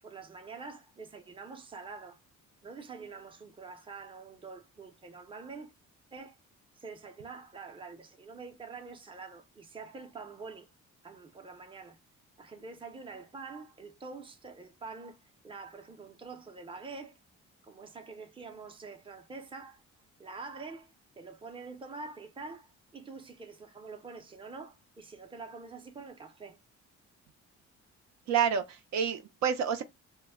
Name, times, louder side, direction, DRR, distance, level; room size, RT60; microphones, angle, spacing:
voice 1, 0.0-2.2 2.6-5.7 6.1-6.4 6.8-10.7 11.0-12.0 12.4-15.2 15.4-17.2 17.6-19.8 20.2-26.6, right 4 dB, 15° right, 0.6 m, -46 dB
voice 2, 28.3-29.8, right 7 dB, 65° right, 0.6 m, -28 dB
2.2 x 2.1 x 3.4 m
cardioid pair, 90°, 30 cm